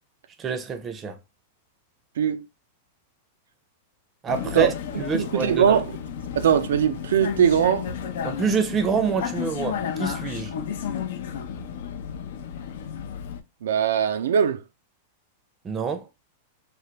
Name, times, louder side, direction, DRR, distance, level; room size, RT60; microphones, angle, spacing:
voice 1, 0.4-1.2 4.2-5.8 8.2-10.5 15.6-16.1, right 5 dB, 20° right, 0.5 m, -27 dB
Vehicle, 4.3-13.4, left 8 dB, 70° left, 0.5 m, -32 dB
voice 2, 4.9-5.8 6.3-7.9 13.6-14.6, right 8 dB, 85° right, 0.4 m, -21 dB
3.4 x 2.2 x 2.8 m
supercardioid pair, 150°, 0 cm